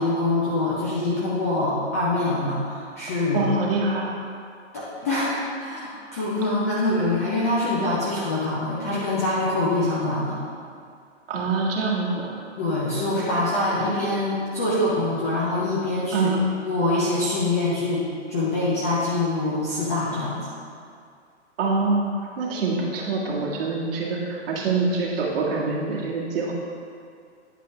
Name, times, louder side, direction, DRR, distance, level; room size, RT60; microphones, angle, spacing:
voice 1, 0.0-3.4 4.7-5.3 5.6-10.4 12.6-16.3 16.7-20.5, left 2 dB, 15° left, -8 dB, 0.4 m, -24 dB
voice 2, 3.3-4.2 11.3-12.4 16.1-16.4 21.6-22.1 22.4-26.5, right 3 dB, 50° right, -4 dB, 1.8 m, -25 dB
9.4 x 5.4 x 3.2 m, 2.2 s
hypercardioid pair, 145°, 36 cm